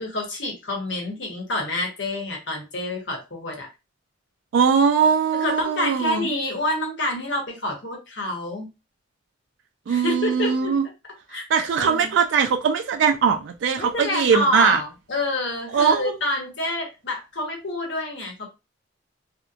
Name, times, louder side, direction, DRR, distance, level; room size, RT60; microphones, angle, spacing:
voice 1, 0.0-3.7 5.4-8.7 9.9-10.9 11.3-11.4 11.8-12.1 13.8-18.5, left 1 dB, 65° left, 1.0 m, -28 dB
voice 2, 4.5-6.3 9.9-10.8 11.3-14.8 15.7-16.2, right 6 dB, 70° right, 0.3 m, -21 dB
2.7 x 2.1 x 2.4 m
head